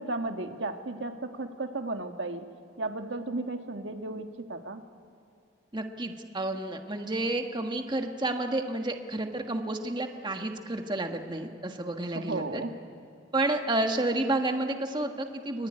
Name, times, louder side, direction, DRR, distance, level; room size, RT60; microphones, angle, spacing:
voice 1, 0.0-2.4 2.8-4.8 12.1-12.7, right 2 dB, 75° right, 5 dB, 1.6 m, -34 dB
voice 2, 5.7-12.6 13.3-15.7, right 2 dB, 25° right, 4 dB, 1.6 m, -30 dB
24.5 x 24.0 x 10.0 m, 2.3 s
head